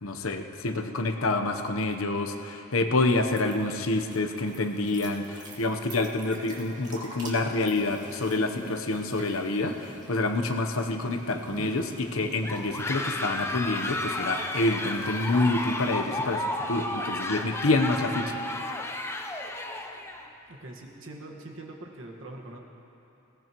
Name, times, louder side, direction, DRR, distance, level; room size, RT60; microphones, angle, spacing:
voice 1, 0.0-18.4, left 2 dB, 80° left, 5 dB, 1.0 m, -27 dB
sound 1, 3.3-16.4, right 1 dB, 35° right, 2.3 m, -47 dB
sound 2, 12.4-20.3, left 1 dB, 10° left, 0.6 m, -32 dB
voice 2, 20.5-22.6, right 2 dB, 65° right, 1 dB, 1.6 m, -43 dB
20.5 x 17.5 x 3.1 m, 3.0 s
head